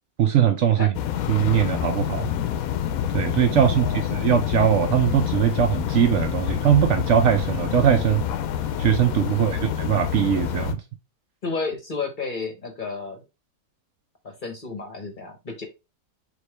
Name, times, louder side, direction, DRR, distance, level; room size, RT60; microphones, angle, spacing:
voice 1, 0.2-0.9 1.3-2.3 3.1-8.2 8.8-10.8, right 9 dB, 65° right, 0.8 m, -21 dB
sound 1, 0.9-10.7, left 10 dB, 75° left, 1.0 m, -27 dB
voice 2, 3.6-4.3 9.3-9.7 11.4-13.2 14.2-15.7, left 4 dB, 40° left, 0.9 m, -32 dB
Explosion, 7.4-9.2, right 4 dB, 80° right, 1.3 m, -39 dB
4.7 x 2.7 x 3.3 m
omnidirectional pair, 1.5 m